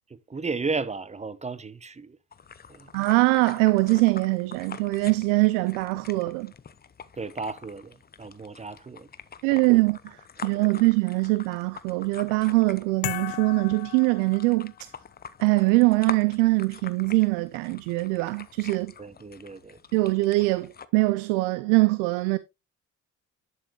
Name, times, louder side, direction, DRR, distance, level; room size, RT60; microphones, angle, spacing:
voice 1, 0.1-2.2 2.7-2.9 7.2-9.1 9.5-9.8 10.6-10.7 19.0-19.8, right 4 dB, 15° right, 0.8 m, -34 dB
sound 1, 2.3-20.9, left 6 dB, 25° left, 0.8 m, -45 dB
voice 2, 2.9-6.5 9.4-14.9 15.4-18.9 19.9-22.4, right 23 dB, 70° right, 0.6 m, -23 dB
sound 2, 13.0-14.9, left 23 dB, 65° left, 0.6 m, -36 dB
11.0 x 5.6 x 3.1 m
hypercardioid pair, 55°, 39 cm